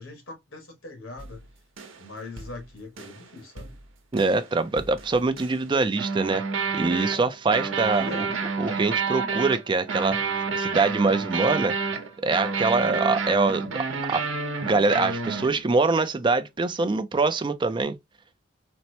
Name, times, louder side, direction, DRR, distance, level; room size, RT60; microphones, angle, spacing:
voice 1, 0.0-1.5 2.0-3.8 8.0-8.3, left 2 dB, 80° left, 1.5 m, -41 dB
sound 1, 1.2-1.3 1.8-2.0 2.4-2.5 3.0-3.2 3.6-3.7 4.1-4.4 4.8-5.6 6.0-15.8, right 4 dB, 80° right, 0.8 m, -29 dB
voice 2, 4.1-6.4 6.7-8.3 8.6-11.7 12.2-13.7 14.1-14.2 14.6-18.0, right 3 dB, 25° right, 0.4 m, -24 dB
4.3 x 2.1 x 2.7 m
head